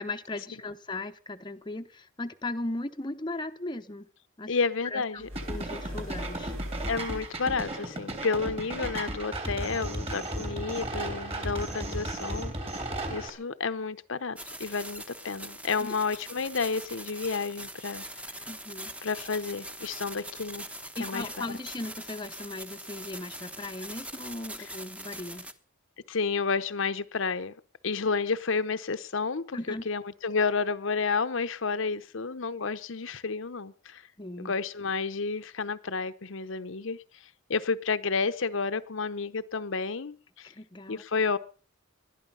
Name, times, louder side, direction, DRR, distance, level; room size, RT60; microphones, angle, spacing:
voice 1, 0.0-4.1 4.4-4.5 4.8-6.6 15.8-16.0 18.5-18.9 19.9-20.0 21.0-25.5 29.5-29.8 34.2-34.5 40.4-41.0, left 2 dB, 20° left, 0.8 m, -37 dB
voice 2, 4.5-5.3 6.9-12.8 13.1-18.0 19.0-20.7 21.0-21.6 26.1-27.5 27.8-29.6 29.9-34.0 34.4-37.0 37.5-40.5 40.9-41.4, left 4 dB, 60° left, 0.8 m, -31 dB
sound 1, 5.2-7.6, equal, 70° right, 5.3 m, -40 dB
sound 2, 5.4-13.3, right 1 dB, 30° right, 3.3 m, -35 dB
sound 3, 14.4-25.5, right 1 dB, 5° right, 1.0 m, -42 dB
20.0 x 12.0 x 5.5 m
head